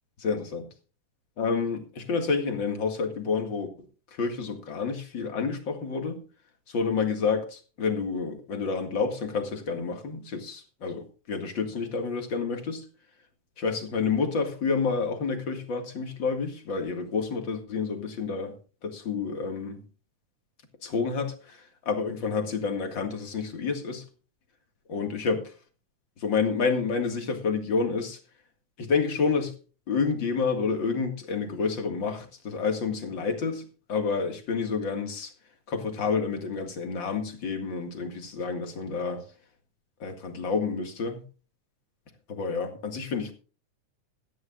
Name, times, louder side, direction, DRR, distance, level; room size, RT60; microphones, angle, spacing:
voice 1, 0.2-0.6 1.4-3.7 4.1-6.2 6.7-12.8 13.6-18.5 18.8-19.8 20.8-24.0 24.9-25.5 26.2-28.2 28.8-29.5 29.9-35.3 35.7-39.3 40.0-41.2 42.3-43.3, left 5 dB, 40° left, 2.4 m, -29 dB
17.0 x 14.5 x 2.5 m
omnidirectional pair, 3.6 m